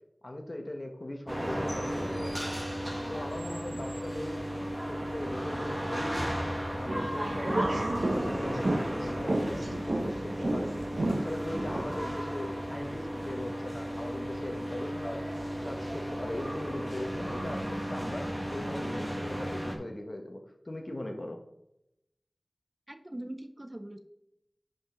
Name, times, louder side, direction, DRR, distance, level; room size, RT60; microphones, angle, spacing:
voice 1, 0.2-2.5 3.1-6.3 6.8-7.8 8.0-10.7 11.1-15.2 15.6-21.4, left 1 dB, 50° left, 3 dB, 1.4 m, -39 dB
sound 1, 1.3-19.7, equal, 15° right, 1.8 m, -35 dB
sound 2, 6.8-12.1, right 1 dB, 75° right, 0.9 m, -32 dB
voice 2, 22.9-24.0, right 1 dB, 30° right, 7 dB, 0.7 m, -41 dB
10.5 x 5.4 x 3.9 m, 0.84 s
wide cardioid pair, 55°, 0 cm